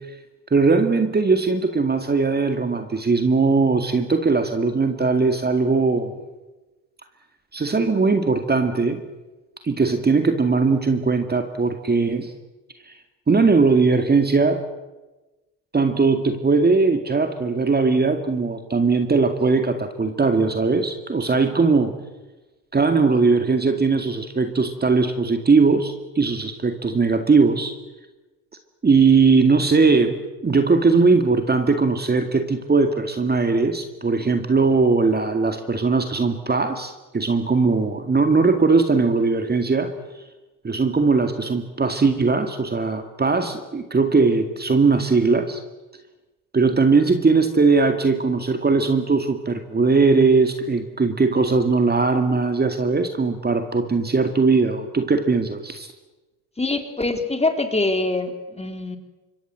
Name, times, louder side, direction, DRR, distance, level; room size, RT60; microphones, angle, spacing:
voice 1, 0.5-6.1 7.5-9.0 9.6-12.3 12.9-13.0 13.3-14.6 15.7-21.9 22.7-27.7 28.8-39.9 40.6-45.6 46.5-55.9, right 4 dB, 20° right, 7 dB, 2.2 m, -19 dB
voice 2, 56.6-59.0, left 2 dB, 15° left, 7 dB, 3.4 m, -24 dB
26.0 x 22.0 x 7.6 m, 1.1 s
supercardioid pair, 80°, 44 cm